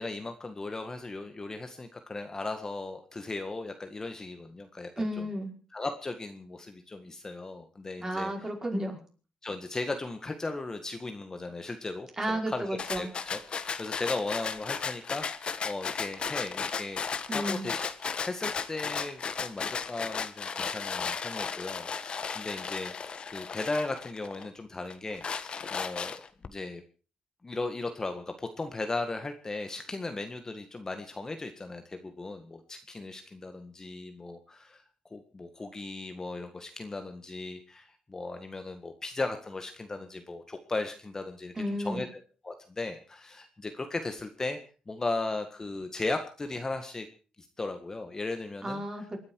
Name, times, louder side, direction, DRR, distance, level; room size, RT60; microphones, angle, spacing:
voice 1, 0.0-5.3 5.7-8.3 9.4-17.9 18.2-22.9 23.3-26.8 27.4-34.8 35.1-41.5 41.8-42.1 42.4-44.6 44.9-47.1 47.4-48.8, left 3 dB, 25° left, 6 dB, 1.7 m, -37 dB
voice 2, 5.0-5.5 8.0-9.0 12.2-13.1 17.3-17.7 41.6-42.0 48.6-49.2, right 1 dB, 25° right, 1 dB, 5.3 m, -32 dB
sound 1, 12.8-24.5 24.9-26.5, left 6 dB, 45° left, 1.4 m, -35 dB
28.0 x 9.9 x 4.7 m, 0.38 s
cardioid pair, 95°, 2 cm